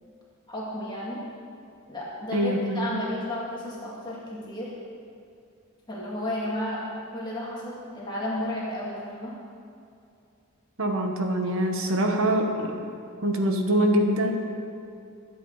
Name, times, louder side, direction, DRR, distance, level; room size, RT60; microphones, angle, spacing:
voice 1, 0.5-1.2 1.9-4.7 5.9-6.8 7.1-9.3, left 1 dB, 20° left, -6 dB, 2.3 m, -32 dB
voice 2, 2.3-2.9 10.8-12.9 13.2-14.3, right 1 dB, 60° right, 3 dB, 1.2 m, -24 dB
23.0 x 8.4 x 4.1 m, 2.5 s
head